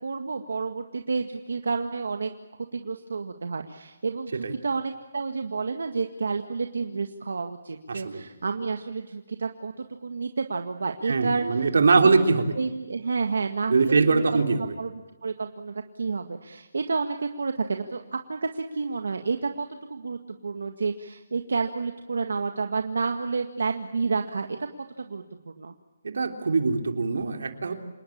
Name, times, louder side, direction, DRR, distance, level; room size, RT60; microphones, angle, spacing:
voice 1, 0.0-2.3 2.7-11.6 12.0-12.2 12.6-14.9 15.2-24.6 25.0-25.7, right 4 dB, 80° right, 5 dB, 1.9 m, -30 dB
voice 2, 7.9-8.2 11.1-12.5 13.7-14.7 26.0-27.7, right 4 dB, 65° right, 4 dB, 3.4 m, -22 dB
28.0 x 20.0 x 8.7 m, 1.1 s
hypercardioid pair, 180°, 0 cm